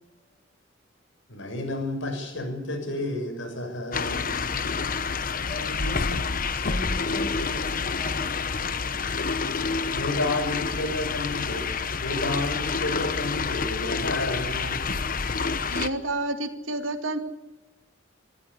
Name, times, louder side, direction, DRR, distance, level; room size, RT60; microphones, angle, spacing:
voice 1, 1.3-4.9 9.9-11.7 12.0-14.9, left 2 dB, 70° left, 5 dB, 6.8 m, -31 dB
sound 1, 3.9-15.9, left 5 dB, 45° left, 1.0 m, -28 dB
voice 2, 5.4-8.5, left 1 dB, 30° left, 5 dB, 7.2 m, -39 dB
voice 3, 15.7-17.2, right 2 dB, 90° right, 7 dB, 2.5 m, -29 dB
26.0 x 14.0 x 9.9 m, 1.0 s
head